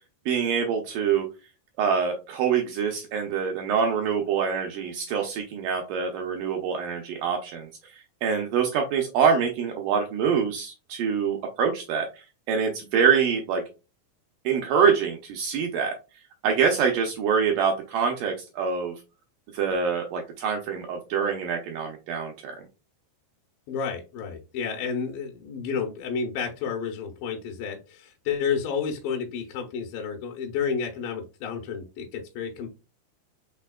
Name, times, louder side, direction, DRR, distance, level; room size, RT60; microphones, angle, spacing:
voice 1, 0.3-1.3 1.8-8.0 8.2-12.1 12.5-13.6 14.5-16.0 16.4-18.9 19.5-22.6, right 6 dB, 80° right, 2 dB, 2.0 m, -25 dB
voice 2, 23.7-32.7, left 6 dB, 75° left, 2 dB, 2.2 m, -31 dB
5.5 x 3.3 x 2.2 m, 0.29 s
omnidirectional pair, 4.4 m